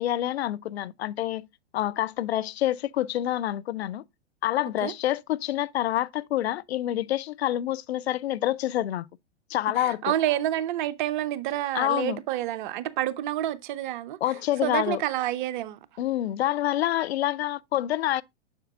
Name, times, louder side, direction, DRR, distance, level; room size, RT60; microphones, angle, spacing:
voice 1, 0.0-1.5 1.7-4.0 4.4-9.1 9.5-10.1 11.7-12.2 14.2-15.0 16.0-18.2, left 13 dB, 65° left, 0.5 m, -27 dB
voice 2, 9.8-14.2 14.6-15.8, right 13 dB, 45° right, 0.6 m, -28 dB
7.2 x 6.7 x 2.3 m
figure-of-eight pair, 105°, 35 cm